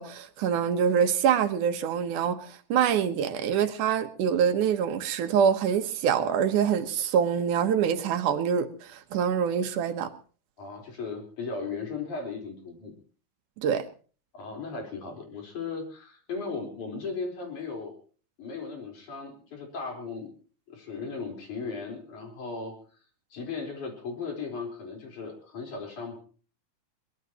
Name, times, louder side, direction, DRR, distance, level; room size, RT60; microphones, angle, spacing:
voice 1, 0.0-10.1 13.6-13.9, right 8 dB, 80° right, 2.8 m, -25 dB
voice 2, 10.6-13.0 14.3-17.9 18.4-20.3 20.7-22.8 23.3-26.2, left 4 dB, 70° left, 5.7 m, -36 dB
23.0 x 20.0 x 3.0 m
omnidirectional pair, 3.5 m